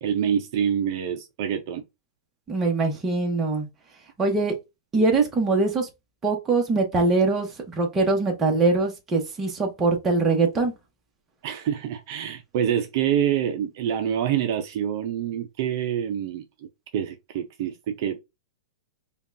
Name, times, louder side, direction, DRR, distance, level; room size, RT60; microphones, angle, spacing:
voice 1, 0.0-1.8 11.4-16.4 16.9-18.2, right 9 dB, 50° right, 0.5 m, -26 dB
voice 2, 2.5-3.7 4.2-4.5 4.9-5.9 6.2-10.7, right 3 dB, 15° right, 1.0 m, -22 dB
5.1 x 2.3 x 2.6 m
hypercardioid pair, 150°, 2 cm